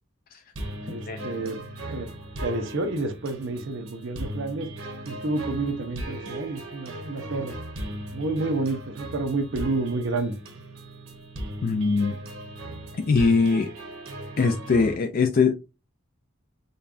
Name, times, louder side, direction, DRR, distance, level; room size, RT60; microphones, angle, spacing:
sound 1, 0.6-15.0, right 1 dB, 90° right, 1.0 m, -38 dB
voice 1, 0.8-1.6 1.9-2.1 2.4-4.7 5.0-7.6 8.1-10.4, right 2 dB, 60° right, 0.7 m, -29 dB
voice 2, 11.6-12.1 13.1-13.7 14.4-15.5, left 4 dB, 45° left, 0.4 m, -21 dB
5.2 x 2.3 x 2.5 m
head